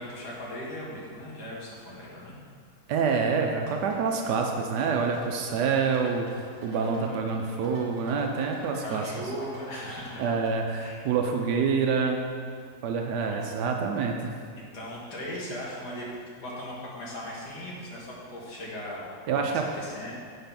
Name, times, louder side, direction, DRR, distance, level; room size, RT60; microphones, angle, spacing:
voice 1, 0.0-2.4 6.7-7.7 8.8-10.2 10.8-11.0 13.3-13.5 14.6-19.5 19.8-20.1, equal, 75° left, -6 dB, 2.3 m, -38 dB
voice 2, 2.9-9.0 10.2-12.3 12.8-14.3 19.3-19.6, right 5 dB, 85° right, 2 dB, 1.3 m, -27 dB
sound 1, 3.7-10.5, right 1 dB, 55° right, 2.5 m, -47 dB
7.9 x 5.5 x 5.8 m, 2.1 s
omnidirectional pair, 1.7 m